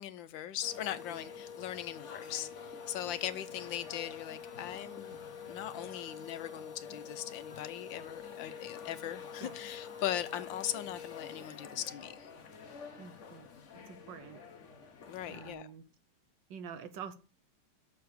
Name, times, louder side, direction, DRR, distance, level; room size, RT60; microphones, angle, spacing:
voice 1, 0.0-5.2 5.5-12.3 15.1-15.7, left 11 dB, 75° left, 1.4 m, -39 dB
sound 1, 0.6-15.5, left 6 dB, 45° left, 1.1 m, -47 dB
voice 2, 13.0-13.5 13.8-14.4 15.3-15.8 16.5-17.2, right 7 dB, 70° right, 1.5 m, -46 dB
7.0 x 6.7 x 6.6 m
omnidirectional pair, 2.2 m